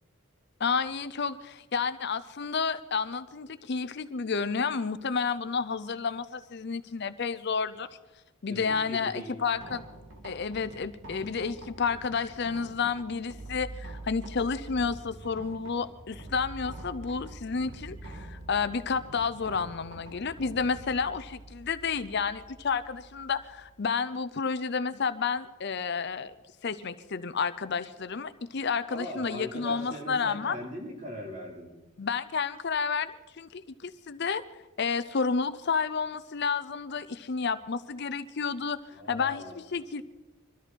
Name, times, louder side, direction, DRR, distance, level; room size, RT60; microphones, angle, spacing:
voice 1, 0.6-7.9 8.4-9.8 10.2-26.3 26.6-30.6 32.0-34.4 34.8-38.8 39.1-40.0, left 5 dB, 50° left, 13 dB, 0.6 m, -31 dB
voice 2, 8.5-9.4 28.9-31.7 38.9-39.6, equal, 35° right, -2 dB, 4.3 m, -40 dB
sound 1, 9.5-23.7, right 2 dB, 65° right, 2.5 m, -46 dB
23.0 x 13.5 x 4.5 m, 1.1 s
head